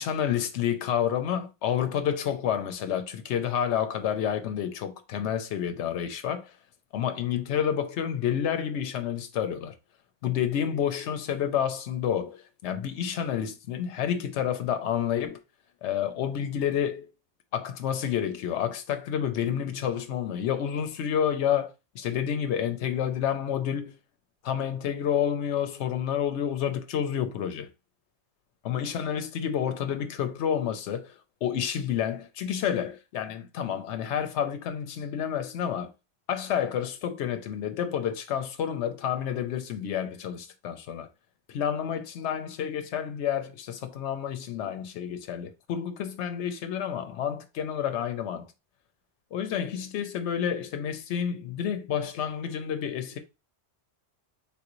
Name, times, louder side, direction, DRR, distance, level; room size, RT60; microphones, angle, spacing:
voice 1, 0.0-6.6 6.9-9.7 10.2-15.4 15.8-17.1 17.5-24.0 24.4-27.7 28.6-35.9 36.3-41.1 41.5-48.5 49.3-53.2, left 9 dB, 85° left, 0.9 m, -29 dB
3.6 x 3.0 x 2.5 m
omnidirectional pair, 1.1 m